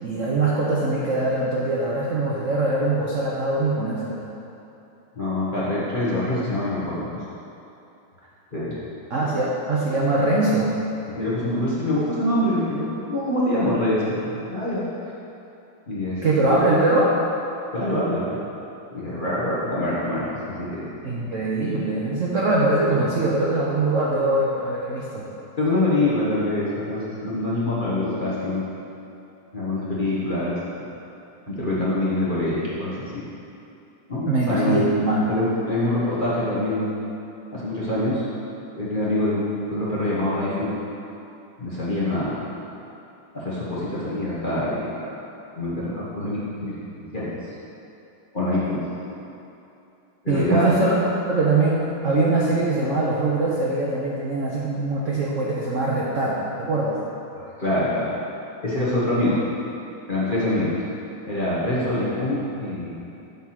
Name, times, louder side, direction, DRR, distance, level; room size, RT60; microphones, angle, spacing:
voice 1, 0.0-4.2 9.1-10.8 16.2-17.1 21.0-25.3 34.3-35.2 50.3-51.0 51.3-57.0, right 2 dB, 65° right, -5 dB, 0.7 m, -22 dB
voice 2, 5.1-7.1 8.5-8.8 11.1-15.1 15.9-16.2 17.7-18.4 18.9-20.9 25.6-28.7 29.5-30.6 31.5-33.2 34.1-34.8 35.3-36.9 37.5-38.2 38.8-40.7 41.6-42.4 43.3-45.1 45.6-47.5 48.3-48.9 50.2-50.7 57.3-58.1 58.6-59.4 60.1-60.8 61.3-63.0, left 1 dB, 30° left, -9 dB, 1.0 m, -25 dB
7.2 x 4.6 x 5.8 m, 2.8 s
omnidirectional pair, 2.3 m